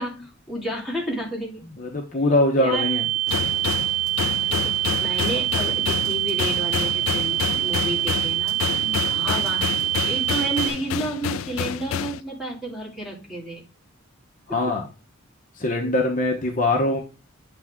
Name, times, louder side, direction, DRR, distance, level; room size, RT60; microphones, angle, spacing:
voice 1, 0.0-1.6 2.6-2.9 4.4-9.7 10.1-13.6 14.5-14.6, right 1 dB, ahead, -5 dB, 2.6 m, -31 dB
voice 2, 1.8-3.1 8.8-9.1 14.5-14.8 15.6-17.0, left 2 dB, 40° left, 1 dB, 0.9 m, -22 dB
sound 1, 2.7-10.7, right 14 dB, 50° right, 1.0 m, -25 dB
sound 2, 3.3-12.2, left 9 dB, 80° left, 0.3 m, -29 dB
8.9 x 3.4 x 3.6 m, 0.33 s
head